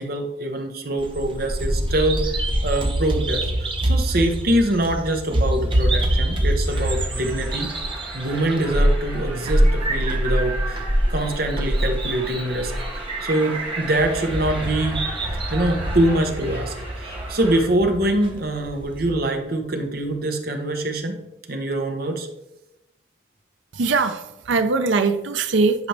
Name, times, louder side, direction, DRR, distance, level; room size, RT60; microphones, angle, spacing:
voice 1, 0.0-7.7 8.1-15.0 15.5-21.2 21.5-22.3, right 1 dB, 50° right, 4 dB, 1.0 m, -24 dB
Bird vocalization bird call bird song, 1.0-19.1, right 1 dB, 25° right, 0.8 m, -25 dB
sound 1, 6.6-17.6, right 2 dB, 10° right, 3.1 m, -37 dB
voice 2, 23.7-25.9, right 4 dB, 80° right, 8 dB, 0.6 m, -21 dB
10.5 x 5.1 x 3.4 m, 0.91 s
head